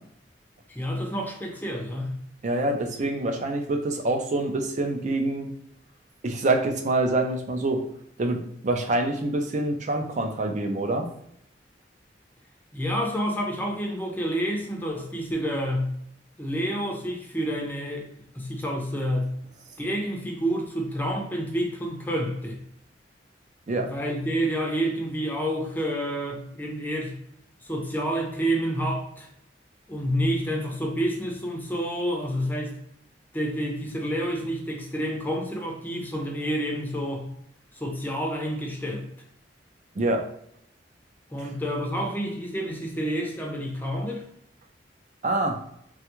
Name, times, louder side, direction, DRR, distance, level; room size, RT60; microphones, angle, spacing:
voice 1, 0.7-2.2 12.7-15.9 16.4-19.3 19.8-22.6 23.8-27.2 27.6-29.3 29.9-32.8 33.3-37.3 37.7-39.1 41.3-44.3, equal, 10° left, 0.5 m, -29 dB
voice 2, 2.4-5.5 6.2-7.8 8.2-8.4 8.6-11.1 23.7-23.9 40.0-40.2 45.2-45.6, right 2 dB, 40° right, 0.4 m, -25 dB
3.2 x 2.3 x 3.0 m
head